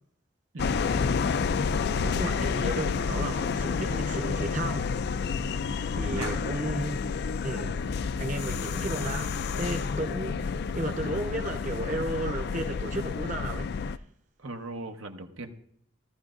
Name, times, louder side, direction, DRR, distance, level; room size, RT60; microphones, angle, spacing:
sound 1, 0.6-14.0, left 5 dB, 50° left, 0.4 m, -29 dB
voice 1, 2.0-4.9 6.0-7.8 8.2-14.0, right 1 dB, 35° right, 0.9 m, -34 dB
voice 2, 6.0-6.4 14.4-15.5, right 2 dB, 75° right, 1.1 m, -38 dB
17.5 x 13.5 x 2.5 m
head